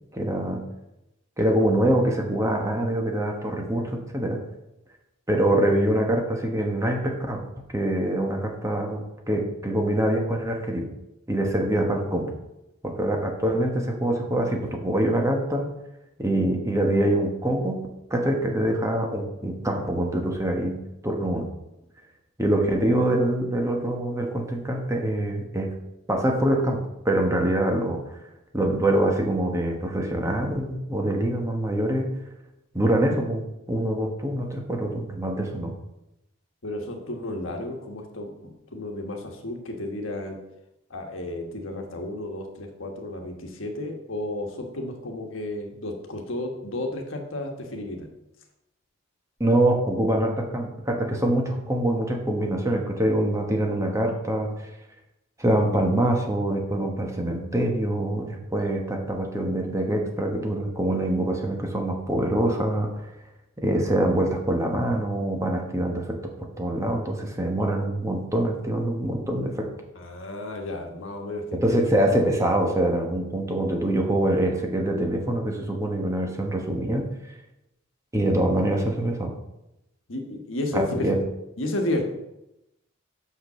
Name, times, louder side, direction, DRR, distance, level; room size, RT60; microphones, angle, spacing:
voice 1, 0.1-0.6 1.4-4.4 5.3-7.4 7.7-10.9 11.3-12.3 12.8-15.7 16.2-17.8 18.1-20.8 21.0-21.5 22.4-25.7 26.1-28.0 28.5-32.1 32.7-35.7 49.4-54.7 55.4-63.1 63.6-69.7 71.5-77.1 78.1-79.3 80.7-81.2, right 1 dB, 15° right, 2 dB, 1.1 m, -24 dB
voice 2, 36.6-40.4 40.9-48.1 69.9-71.8 80.1-81.1 81.6-82.0, left 1 dB, 65° left, 3 dB, 1.4 m, -32 dB
6.0 x 5.7 x 6.8 m, 0.90 s
head